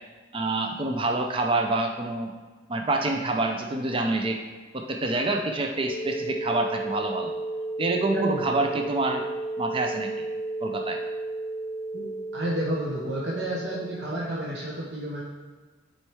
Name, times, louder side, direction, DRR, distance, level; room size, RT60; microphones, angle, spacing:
voice 1, 0.3-2.4 2.7-4.4 4.7-7.3 7.8-9.2 9.6-10.3 10.6-11.0, right 2 dB, 25° right, 3 dB, 0.4 m, -27 dB
sound 1, 5.9-14.3, right 2 dB, 50° left, 0.6 m, -33 dB
voice 2, 8.1-8.5 11.9-12.0 12.3-15.2, right 1 dB, 60° right, -5 dB, 1.0 m, -30 dB
7.4 x 4.4 x 3.4 m, 1.4 s
head